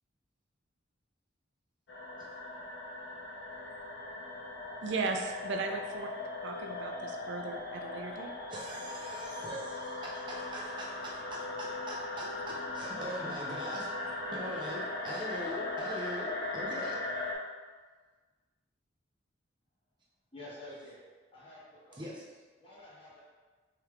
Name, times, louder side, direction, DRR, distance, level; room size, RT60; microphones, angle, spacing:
sound 1, 1.9-17.3, left 2 dB, 75° left, 0.7 m, -39 dB
voice 1, 4.8-6.1 6.4-8.3, right 4 dB, 70° right, 3 dB, 0.4 m, -36 dB
voice 2, 8.5-17.1 21.9-22.2, equal, 25° right, -4 dB, 0.6 m, -42 dB
voice 3, 20.3-21.0 21.3-22.0 22.6-23.3, left 1 dB, 30° left, -7 dB, 1.1 m, -49 dB
4.4 x 3.4 x 2.3 m, 1.4 s
head